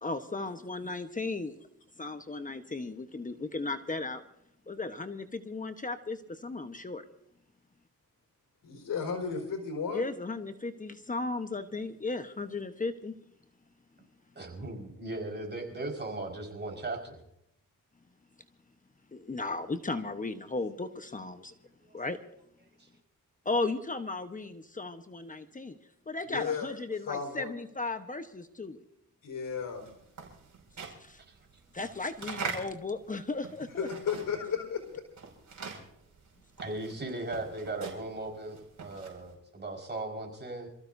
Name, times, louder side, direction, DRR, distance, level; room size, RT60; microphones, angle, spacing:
voice 1, 0.0-1.5 2.0-4.2 4.7-7.0 9.9-13.1 19.1-21.5 21.9-22.2 23.4-25.8 26.1-28.8 30.8-31.2 31.7-33.9, left 3 dB, 25° left, 8 dB, 1.1 m, -35 dB
voice 2, 8.6-10.1 26.3-26.7 27.1-27.5 29.2-29.9 33.8-35.0, left 6 dB, 70° left, 3 dB, 4.8 m, -34 dB
voice 3, 14.3-17.2 22.8-22.9 31.3-31.4 36.6-40.7, right 2 dB, 30° right, 2 dB, 5.0 m, -38 dB
sound 1, 29.6-34.6 34.8-39.3, right 5 dB, 60° right, 5.7 m, -42 dB
27.5 x 15.0 x 2.7 m, 0.74 s
cardioid pair, 90°, 33 cm